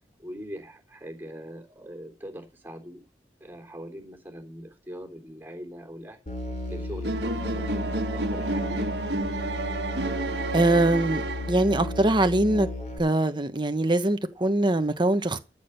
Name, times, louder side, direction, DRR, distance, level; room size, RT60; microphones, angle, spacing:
voice 1, 0.2-3.0 3.4-6.2 6.7-8.9, equal, 10° right, 3.3 m, -42 dB
Musical instrument, 6.3-13.0, left 1 dB, 45° left, 4.5 m, -34 dB
sound 1, 7.0-11.9, right 2 dB, 70° right, 1.6 m, -30 dB
voice 2, 10.5-11.2 11.5-12.7 13.0-15.4, right 1 dB, 25° right, 1.2 m, -22 dB
13.5 x 7.3 x 6.8 m
head